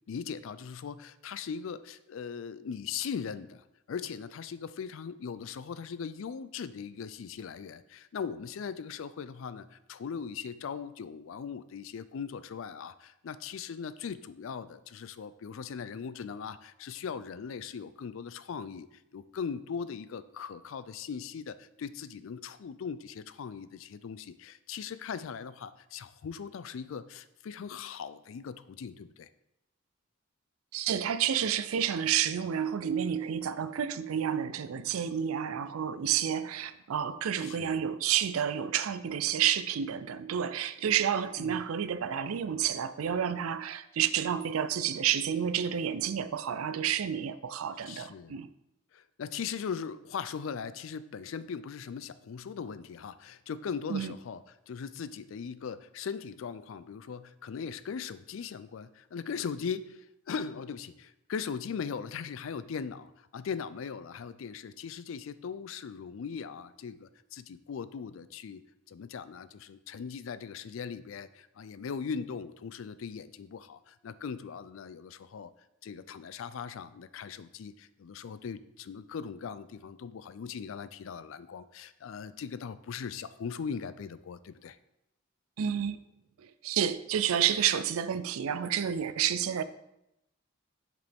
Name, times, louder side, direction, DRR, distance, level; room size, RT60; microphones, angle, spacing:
voice 1, 0.1-18.9 19.1-29.3 37.4-37.8 41.4-41.6 47.9-48.4 48.9-75.5 75.8-84.8, left 6 dB, 70° left, 0.4 m, -39 dB
voice 2, 30.7-48.5 53.9-54.1 85.6-86.0 86.6-89.6, right 9 dB, 90° right, 0.4 m, -30 dB
7.8 x 5.0 x 3.5 m
head